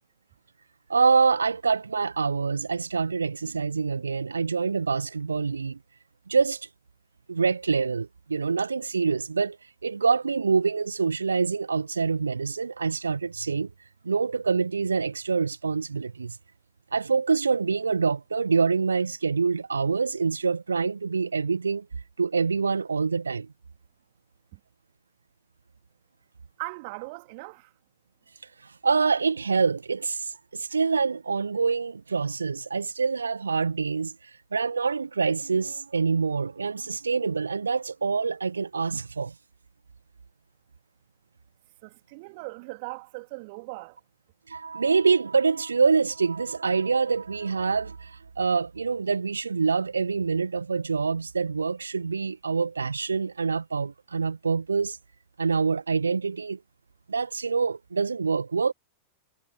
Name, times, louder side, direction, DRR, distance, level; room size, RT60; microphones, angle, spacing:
voice 1, 0.9-5.8 6.3-6.6 7.3-9.6 9.8-13.7 14.0-16.4 16.9-21.9 22.2-23.5 28.6-34.1 34.5-39.3 44.5-55.0 55.4-56.6 57.1-58.7, right 5 dB, 75° right, 1.6 m, -26 dB
voice 2, 26.6-27.7 41.8-44.0, right 28 dB, 45° right, 3.2 m, -39 dB
figure-of-eight pair, 90°, 0 cm